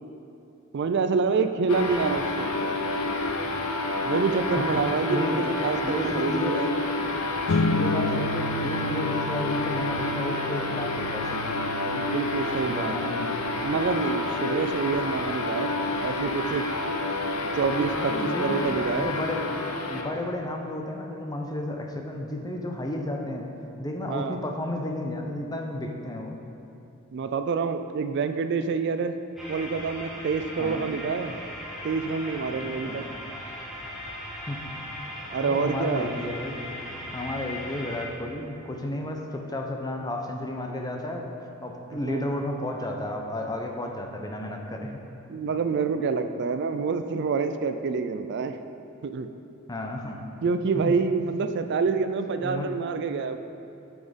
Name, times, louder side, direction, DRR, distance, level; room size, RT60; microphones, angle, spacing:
voice 1, 0.7-2.5 4.0-6.8 11.9-13.0 13.6-15.7 16.0-16.6 17.5-18.1 18.4-19.1 24.0-24.4 27.1-29.2 29.5-31.3 31.8-33.0 35.3-36.1 42.1-42.3 45.3-48.6 49.0-49.3 50.4-53.4, right 5 dB, 50° right, 9 dB, 0.3 m, -27 dB
sound 1, 1.7-20.1, left 2 dB, 80° left, 0.8 m, -29 dB
voice 2, 5.1-5.5 5.8-6.6 7.5-11.6 12.7-13.5 18.0-19.6 19.9-23.5 23.8-26.4 30.6-30.8 32.6-33.1 34.5-34.6 35.4-36.6 37.1-41.3 41.6-45.0 49.7-50.2 50.7-50.9 52.4-52.8, left 1 dB, 15° left, 2 dB, 0.7 m, -32 dB
sound 2, 7.5-18.2, left 2 dB, 60° left, 0.4 m, -34 dB
sound 3, 29.4-38.0, left 1 dB, ahead, 1.3 m, -38 dB
8.6 x 6.2 x 5.2 m, 2.8 s
head